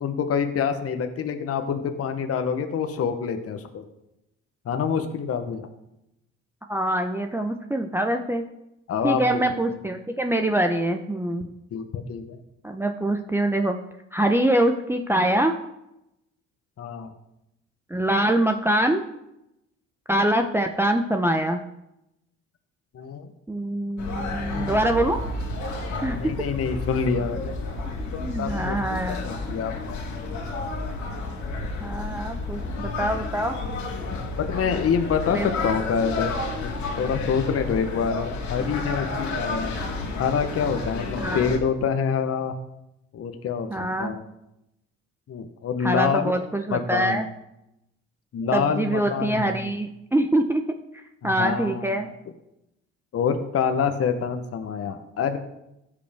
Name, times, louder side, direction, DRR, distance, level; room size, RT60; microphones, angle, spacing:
voice 1, 0.0-3.8 4.7-5.6 8.9-9.4 11.7-12.4 16.8-17.1 22.9-23.3 24.5-24.7 26.1-27.5 28.4-30.0 34.4-39.8 40.2-42.5 43.1-44.2 45.3-46.3 46.7-47.2 48.3-49.7 51.2-51.9 53.1-55.4, left 6 dB, 50° left, 7 dB, 1.0 m, -26 dB
voice 2, 6.7-8.4 9.0-11.5 12.6-13.8 14.1-15.5 17.9-19.0 20.1-21.6 23.5-25.2 26.0-26.2 28.2-29.3 31.8-33.6 35.3-35.5 41.2-41.5 43.7-44.1 45.8-47.3 48.5-50.6 51.2-52.1, right 1 dB, 10° right, 4 dB, 0.7 m, -24 dB
sound 1, 24.0-41.6, left 3 dB, 70° left, 2.0 m, -31 dB
15.0 x 5.1 x 3.5 m, 0.86 s
supercardioid pair, 70°, 30 cm